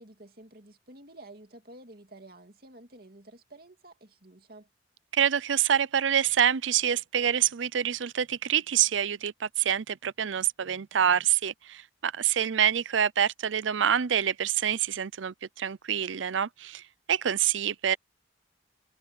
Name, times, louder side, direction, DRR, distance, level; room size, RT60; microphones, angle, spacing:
voice 1, 0.0-4.7, right 1 dB, 50° right, 2.8 m, -50 dB
voice 2, 5.1-18.0, right 9 dB, 80° right, 0.5 m, -26 dB
head